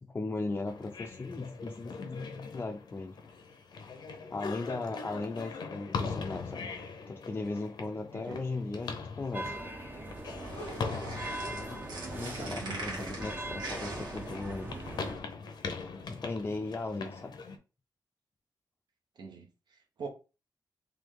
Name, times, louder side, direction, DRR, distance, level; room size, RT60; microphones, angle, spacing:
voice 1, 0.0-3.2 4.3-6.7 7.1-9.5 11.5-14.7 16.1-17.3, left 3 dB, 25° left, 0.4 m, -37 dB
sound 1, 0.7-17.6, left 5 dB, 75° left, 0.7 m, -41 dB
voice 2, 8.1-8.4 12.4-13.2 19.2-20.1, right 4 dB, 75° right, 1.1 m, -43 dB
sound 2, 9.3-15.1, right 2 dB, 25° right, 0.6 m, -41 dB
sound 3, 10.2-15.2, right 2 dB, 90° right, 1.8 m, -42 dB
3.5 x 3.3 x 3.7 m
wide cardioid pair, 170°, 7 cm